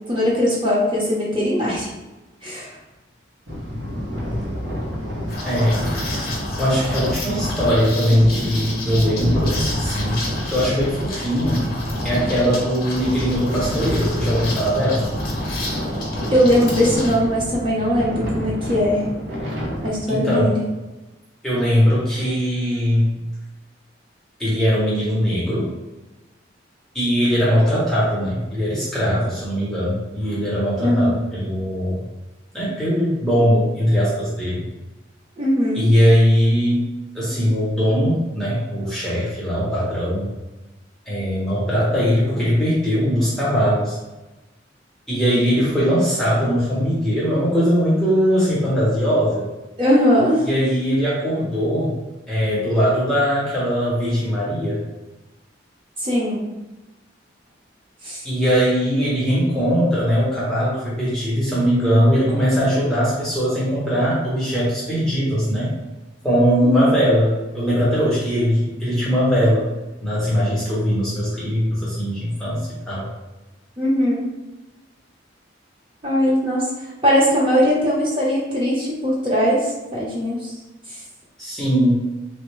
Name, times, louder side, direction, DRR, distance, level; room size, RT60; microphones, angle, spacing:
voice 1, 0.1-1.9 2.4-2.7 16.3-19.1 19.8-20.6 30.8-31.2 35.4-35.9 45.1-45.6 49.8-50.4 56.0-56.4 58.0-58.2 66.6-66.9 73.8-74.3 76.0-76.7 77.0-80.5, equal, 25° right, -6 dB, 0.9 m, -20 dB
sound 1, 3.5-19.9, equal, 65° right, 0.8 m, -28 dB
Liquid, 5.3-17.1, left 2 dB, 50° left, 0.8 m, -32 dB
voice 2, 5.4-5.8 6.6-10.2 10.4-11.6 12.0-15.1 20.1-20.6 21.4-23.1 24.4-25.7 26.9-32.0 32.5-34.6 35.7-36.9 37.1-40.3 41.1-44.0 45.1-49.5 50.4-52.0 52.3-54.8 58.2-65.7 66.2-69.7 70.0-73.1 81.4-82.0, equal, ahead, -9 dB, 0.7 m, -20 dB
3.3 x 2.1 x 3.1 m, 1.1 s
head